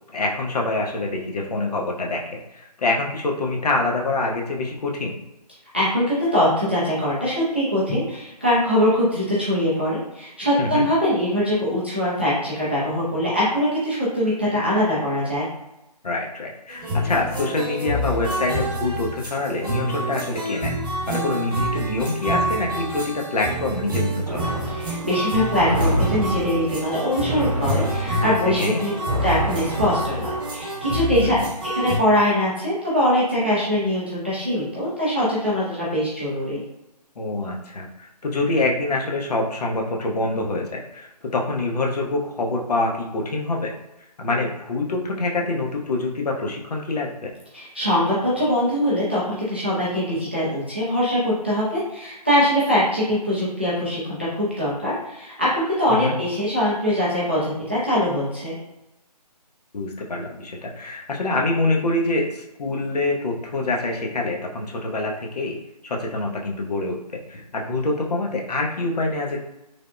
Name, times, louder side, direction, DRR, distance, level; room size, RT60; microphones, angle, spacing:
voice 1, 0.0-5.2 10.6-10.9 16.0-20.7 21.1-24.5 28.6-28.8 31.1-31.5 37.2-43.7 44.2-47.3 55.9-56.1 59.7-65.6 65.8-69.4, left 2 dB, 65° left, 0 dB, 0.7 m, -25 dB
voice 2, 5.7-15.5 24.7-28.9 29.2-31.4 31.7-36.6 47.5-58.6, equal, 15° right, -9 dB, 0.3 m, -22 dB
sound 1, 16.7-32.0, equal, 30° right, 0.9 m, -27 dB
sound 2, 24.3-30.7, right 1 dB, 60° right, 0.7 m, -28 dB
3.3 x 2.0 x 2.4 m, 0.93 s
figure-of-eight pair, 160°, 21 cm